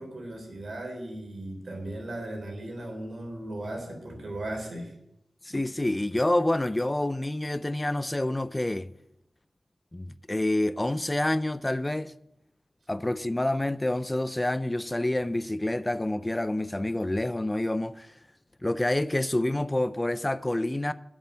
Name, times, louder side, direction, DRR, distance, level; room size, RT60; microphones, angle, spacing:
voice 1, 0.0-4.9, right 1 dB, 70° right, 3.8 m, -37 dB
voice 2, 5.4-8.9 9.9-12.1 12.9-18.1 18.6-20.9, left 1 dB, 25° left, 0.5 m, -28 dB
8.3 x 7.4 x 8.5 m
cardioid pair, 50°, 0 cm